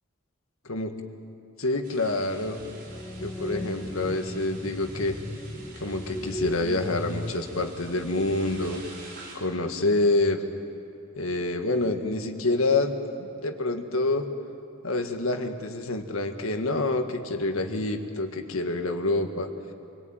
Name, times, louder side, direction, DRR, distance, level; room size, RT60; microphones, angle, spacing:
voice 1, 1.6-2.6 3.2-5.2 5.8-8.8 9.4-10.4 11.2-14.3 14.8-19.5, left 2 dB, 85° left, 5 dB, 1.8 m, -27 dB
sound 1, 1.8-9.4, right 3 dB, 45° right, 6.3 m, -48 dB
sound 2, 2.4-8.9, equal, 15° left, 0.8 m, -37 dB
26.0 x 19.0 x 9.1 m, 2.7 s
head